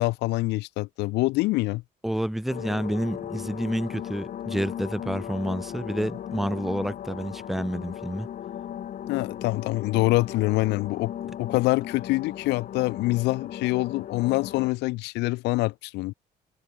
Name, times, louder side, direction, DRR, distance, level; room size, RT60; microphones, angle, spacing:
voice 1, 0.0-1.8 9.1-11.1 11.4-16.1, left 21 dB, 90° left, 1.2 m, -25 dB
voice 2, 2.0-8.3, equal, ahead, 0.5 m, -29 dB
sound 1, 2.5-14.7, left 10 dB, 50° left, 1.3 m, -37 dB
cardioid pair, 110°, 17 cm